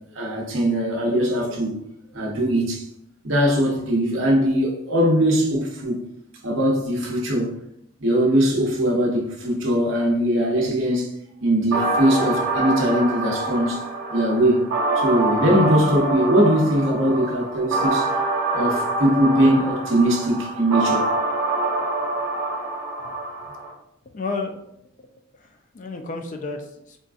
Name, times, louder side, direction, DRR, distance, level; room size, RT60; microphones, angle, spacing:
voice 1, 0.1-1.8 2.1-2.9 3.2-6.0 6.4-7.6 8.0-11.1 11.4-13.8 14.1-14.7 14.9-18.1 18.5-21.1, equal, 60° right, 0.8 m, -21 dB
sound 1, 11.7-23.7, right 2 dB, 90° right, 0.9 m, -25 dB
voice 2, 24.1-24.6 25.0-25.1 25.3-27.0, left 3 dB, 35° left, 0.3 m, -32 dB
3.8 x 2.4 x 2.4 m
head